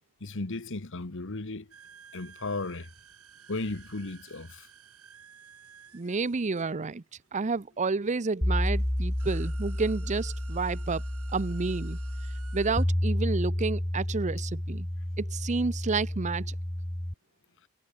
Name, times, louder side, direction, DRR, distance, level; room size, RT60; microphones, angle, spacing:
voice 1, 0.2-1.7 2.1-2.9 3.5-4.7, left 2 dB, 60° left, 1.4 m, -35 dB
sound 1, 1.7-7.4 8.3-8.4 8.7-12.8, right 7 dB, 80° right, 5.6 m, -53 dB
voice 2, 5.9-7.0 7.3-11.0 11.3-12.0 12.5-14.9 15.2-16.5, right 4 dB, 35° right, 0.6 m, -30 dB
sound 2, 8.4-17.1, equal, 10° left, 0.7 m, -31 dB
head